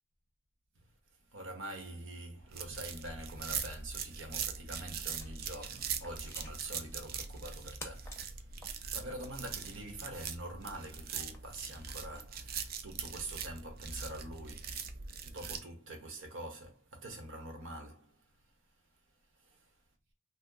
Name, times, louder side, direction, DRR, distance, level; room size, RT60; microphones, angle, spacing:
voice 1, 1.3-8.3 8.6-14.8 15.2-18.2 19.4-19.6, right 1 dB, 90° right, 1.0 m, -45 dB
sound 1, 2.5-15.6, right 6 dB, 50° right, 0.4 m, -41 dB
sound 2, 4.9-12.4, left 2 dB, 15° left, 0.6 m, -55 dB
2.8 x 2.1 x 3.7 m
head